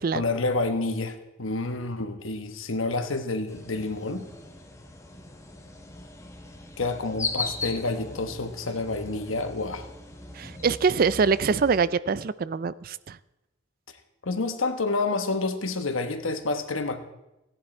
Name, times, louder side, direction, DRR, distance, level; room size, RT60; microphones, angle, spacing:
voice 1, 0.1-4.3 6.8-9.9 14.2-17.0, left 3 dB, 90° left, 8 dB, 1.2 m, -29 dB
sound 1, 3.5-11.8, left 3 dB, 15° left, 1.2 m, -39 dB
voice 2, 10.3-13.2, right 5 dB, 45° right, 17 dB, 0.4 m, -24 dB
15.5 x 10.5 x 4.4 m, 0.95 s
head